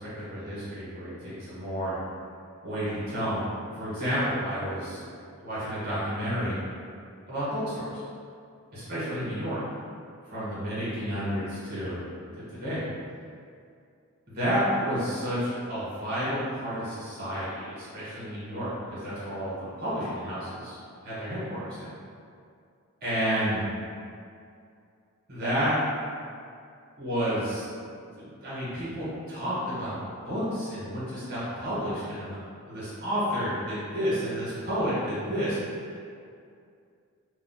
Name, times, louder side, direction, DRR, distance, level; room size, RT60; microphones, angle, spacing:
voice 1, 0.0-1.9 2.6-5.1 5.4-6.5 7.3-8.0 8.7-9.6 10.3-12.0 12.5-12.8 14.3-20.8 21.0-21.9 23.0-23.7 25.3-25.7 27.0-27.7 28.1-29.9 30.2-32.4 32.7-35.6, equal, 45° right, -10 dB, 1.2 m, -30 dB
2.6 x 2.0 x 3.9 m, 2.4 s
head